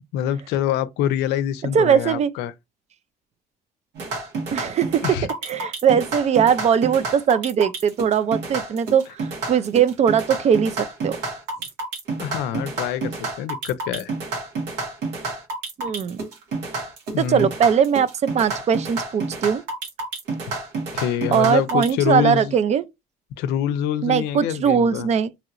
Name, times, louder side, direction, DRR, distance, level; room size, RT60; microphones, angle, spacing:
voice 1, 0.1-2.5 5.0-5.3 12.2-14.1 17.1-17.5 20.9-22.5 23.4-25.1, left 10 dB, 90° left, 0.5 m, -25 dB
voice 2, 1.7-2.3 4.5-5.2 5.4-11.2 15.8-16.2 17.2-19.6 21.3-22.9 24.0-25.3, right 8 dB, 40° right, 0.4 m, -20 dB
sound 1, 3.9-21.9, right 3 dB, 90° right, 1.5 m, -29 dB
2.9 x 2.9 x 2.4 m
cardioid pair, 110°, 17 cm